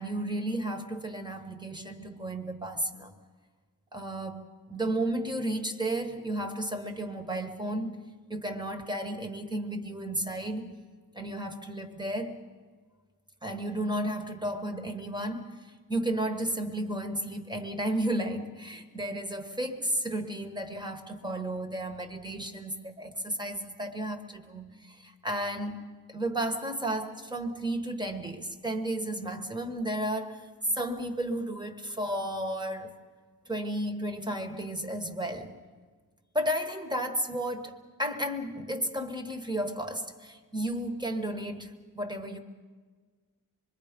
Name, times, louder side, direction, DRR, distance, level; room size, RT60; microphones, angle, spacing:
voice 1, 0.0-3.1 3.9-8.0 8.3-10.7 11.1-12.4 13.4-32.9 33.4-35.5 36.3-42.4, right 1 dB, 10° right, 6 dB, 1.3 m, -33 dB
26.0 x 22.0 x 5.2 m, 1.5 s
wide cardioid pair, 180°, 35 cm